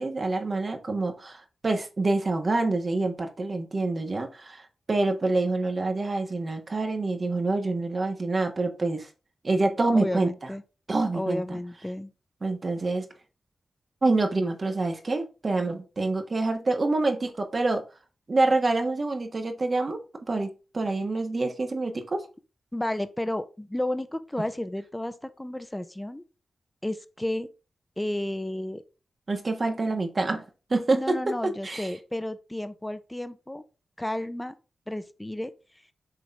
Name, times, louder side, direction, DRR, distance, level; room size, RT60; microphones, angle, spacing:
voice 1, 0.0-9.1 9.4-10.3 10.9-11.6 12.4-13.1 14.0-17.8 18.3-20.0 20.3-22.3 29.3-30.4 30.7-31.9, right 2 dB, 50° right, 1.5 m, -26 dB
voice 2, 9.9-10.6 11.1-12.1 22.7-26.2 26.8-27.5 28.0-28.8 30.9-33.6 34.0-34.5 34.9-35.5, left 1 dB, 15° left, 0.8 m, -32 dB
6.5 x 3.8 x 4.7 m
supercardioid pair, 40°, 0 cm